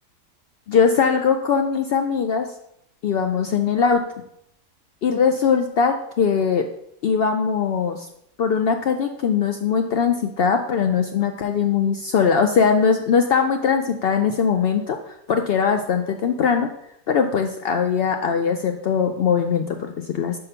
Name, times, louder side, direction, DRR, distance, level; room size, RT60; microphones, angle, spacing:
voice 1, 0.7-2.5 3.0-4.0 5.0-6.7 7.0-8.1 8.4-16.7 17.1-20.4, left 6 dB, 85° left, 6 dB, 0.5 m, -21 dB
5.5 x 5.5 x 5.6 m, 0.77 s
omnidirectional pair, 1.6 m